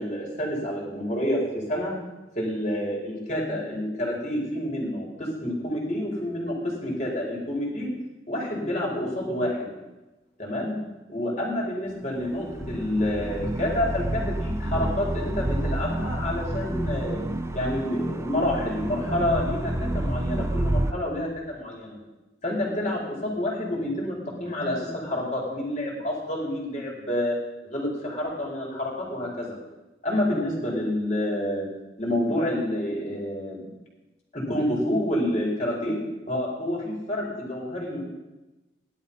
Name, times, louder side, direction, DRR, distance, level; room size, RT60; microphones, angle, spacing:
voice 1, 0.0-1.9 2.3-7.9 8.3-9.7 10.4-10.8 11.1-17.2 17.5-22.0 22.4-27.4 27.6-29.5 30.0-31.7 32.0-33.6 34.3-36.0 36.3-38.0, left 1 dB, 40° left, -3 dB, 4.8 m, -28 dB
sound 1, 12.2-20.9, right 1 dB, 15° right, 0.7 m, -29 dB
17.0 x 11.5 x 5.8 m, 1.1 s
head